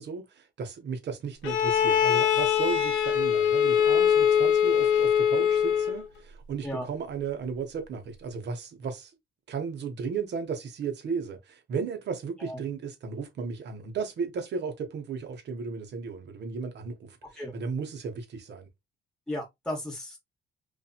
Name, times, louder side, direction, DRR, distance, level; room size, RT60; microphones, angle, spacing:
voice 1, 0.0-9.1 9.5-18.7, right 5 dB, 60° right, 1.0 m, -35 dB
Bowed string instrument, 1.4-6.0, left 9 dB, 85° left, 0.7 m, -23 dB
voice 2, 19.3-20.2, left 1 dB, 5° left, 1.0 m, -34 dB
2.8 x 2.5 x 2.4 m
cardioid pair, 90°, 20 cm